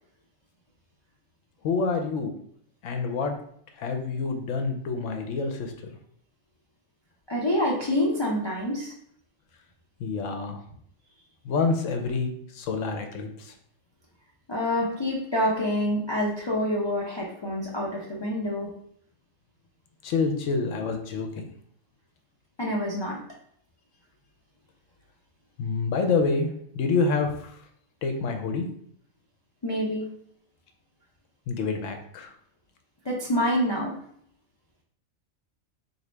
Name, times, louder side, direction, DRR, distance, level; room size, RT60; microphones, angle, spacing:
voice 1, 1.6-2.3 2.8-3.3 3.8-5.7 10.0-10.6 11.4-13.5 20.0-21.5 25.6-27.6 28.0-28.7 31.5-32.3, left 4 dB, 75° left, 5 dB, 0.9 m, -27 dB
voice 2, 7.3-8.9 14.5-18.7 22.6-23.2 29.6-30.1 33.0-34.0, equal, 35° left, -4 dB, 0.4 m, -27 dB
4.0 x 2.7 x 3.2 m, 0.65 s
omnidirectional pair, 1.3 m